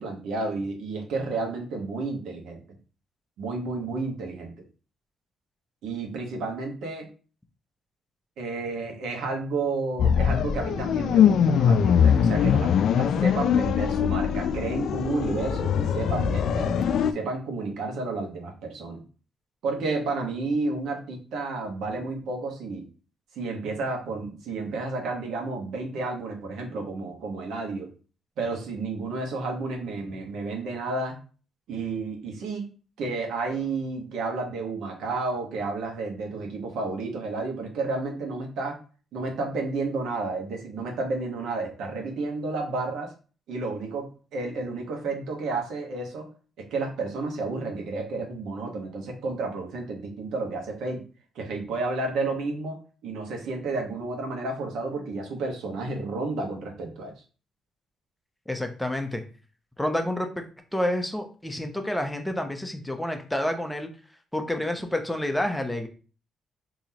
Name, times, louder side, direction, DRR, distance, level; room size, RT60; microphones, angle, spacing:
voice 1, 0.0-2.6 3.4-4.5 5.8-7.1 8.4-16.8 17.1-19.0 19.6-22.8 23.3-27.9 28.4-31.2 31.7-32.7 33.0-38.8 39.1-43.1 43.5-46.3 46.6-51.0 51.3-57.1, right 3 dB, 80° right, 2 dB, 1.2 m, -31 dB
sound 1, 10.0-17.1, left 7 dB, 70° left, 0.3 m, -22 dB
voice 2, 58.5-59.2 59.8-60.4 60.7-63.9 64.3-65.9, left 1 dB, 5° left, 5 dB, 0.7 m, -29 dB
3.8 x 2.9 x 2.8 m, 0.37 s
cardioid pair, 90°, 0 cm